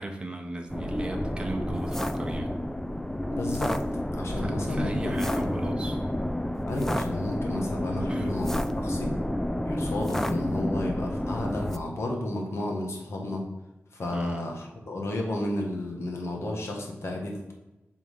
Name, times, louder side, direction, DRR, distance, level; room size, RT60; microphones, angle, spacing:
voice 1, 0.0-2.5 4.3-6.0 8.1-8.4 14.1-14.4, right 2 dB, 20° right, 2 dB, 0.9 m, -36 dB
sound 1, 0.7-11.8, left 1 dB, 10° left, 0.4 m, -30 dB
voice 2, 3.3-3.8 4.2-5.6 6.7-9.1 9.6-13.5 13.9-17.5, left 1 dB, 70° left, 0 dB, 1.4 m, -32 dB
5.6 x 3.8 x 4.8 m, 1.0 s
cardioid pair, 60°, 5 cm